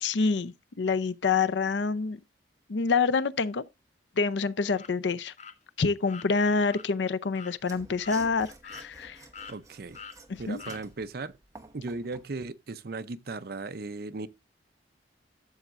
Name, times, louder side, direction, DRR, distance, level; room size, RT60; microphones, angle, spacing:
voice 1, 0.0-2.2 2.7-3.6 4.2-5.3 5.8-9.2 10.3-10.6, left 4 dB, 75° left, 0.6 m, -27 dB
sound 1, 4.8-4.9 5.4-5.6 6.1-6.3 6.7-6.9 7.3-7.6 8.0-8.2 8.6-9.1 9.3-9.6 9.9-10.2 10.6-10.8, left 6 dB, 40° left, 0.8 m, -44 dB
Mechanisms / Sawing, 7.6-12.3, right 3 dB, 15° right, 0.9 m, -50 dB
voice 2, 9.5-10.0 10.4-11.4 11.7-14.3, right 3 dB, 55° right, 0.6 m, -37 dB
12.0 x 7.1 x 2.5 m
head